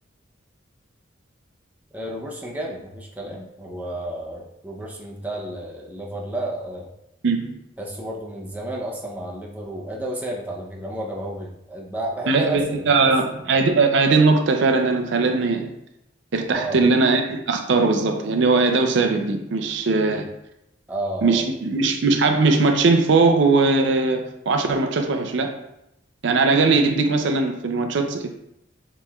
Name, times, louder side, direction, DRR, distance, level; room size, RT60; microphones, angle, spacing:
voice 1, 1.9-6.9 7.8-13.1 16.5-16.8 20.1-20.2 20.9-21.5, right 1 dB, 10° right, -2 dB, 0.6 m, -32 dB
voice 2, 7.2-7.6 12.3-15.7 16.3-20.3 21.2-25.5 26.2-28.3, right 3 dB, 70° right, 5 dB, 0.4 m, -20 dB
7.3 x 3.1 x 2.3 m, 0.84 s
head